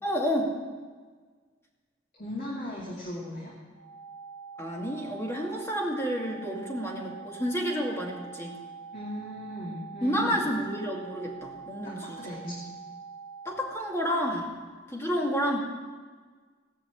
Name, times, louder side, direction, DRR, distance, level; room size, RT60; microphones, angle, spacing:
voice 1, 0.0-0.5 4.6-8.6 10.0-12.7 13.5-14.5 14.9-15.6, equal, 15° left, -2 dB, 2.3 m, -30 dB
voice 2, 2.1-3.5 8.9-10.4 11.8-12.6, left 1 dB, 40° left, -5 dB, 2.5 m, -38 dB
sound 1, 3.7-13.7, right 5 dB, 90° right, 2.8 m, -44 dB
18.5 x 6.2 x 8.2 m, 1.5 s
head